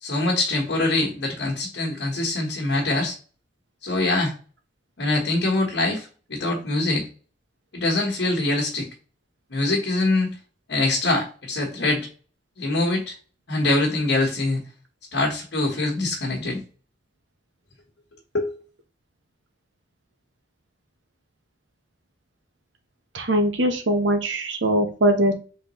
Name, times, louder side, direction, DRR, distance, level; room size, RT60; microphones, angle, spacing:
voice 1, 0.0-3.2 3.8-4.3 5.0-7.1 7.7-8.9 9.5-10.3 10.7-12.1 12.6-13.1 13.5-14.6 15.1-16.6 18.3-18.6, left 2 dB, 75° left, -2 dB, 1.2 m, -24 dB
voice 2, 23.1-25.3, right 1 dB, 90° right, 5 dB, 0.9 m, -21 dB
3.8 x 3.6 x 3.0 m, 0.36 s
head